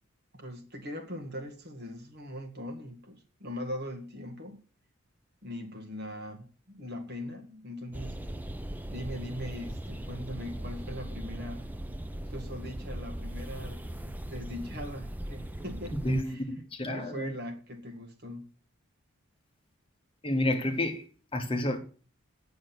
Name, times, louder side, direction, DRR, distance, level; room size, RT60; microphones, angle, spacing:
voice 1, 0.3-4.6 5.4-8.2 8.9-11.7 12.3-16.7 16.9-18.5, left 1 dB, 50° right, 1.9 m, -40 dB
sound 1, 7.9-16.2, right 1 dB, 10° right, 0.4 m, -39 dB
voice 2, 16.0-17.3 20.2-21.1 21.3-21.8, left 1 dB, 25° left, 1.2 m, -30 dB
8.7 x 6.7 x 6.0 m
head